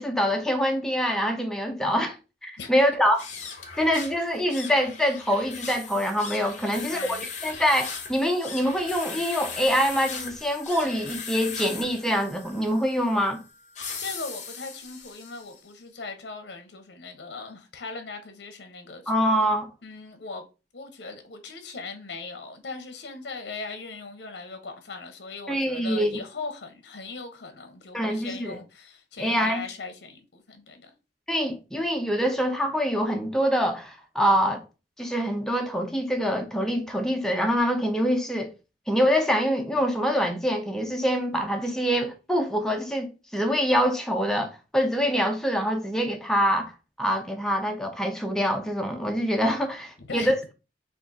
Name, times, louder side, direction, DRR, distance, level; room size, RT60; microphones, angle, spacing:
voice 1, 0.0-2.2 2.4-3.2 3.8-13.4 19.1-19.7 25.5-26.2 27.9-28.6 29.2-29.6 31.3-34.6 35.0-38.5 38.9-50.4, equal, 5° left, 0.6 m, -25 dB
sound 1, 3.1-15.6, left 5 dB, 45° left, 0.9 m, -39 dB
voice 2, 6.6-7.2 14.0-19.3 19.8-20.4 20.7-30.9 50.0-50.4, left 3 dB, 70° left, 0.7 m, -39 dB
3.6 x 2.4 x 3.8 m
head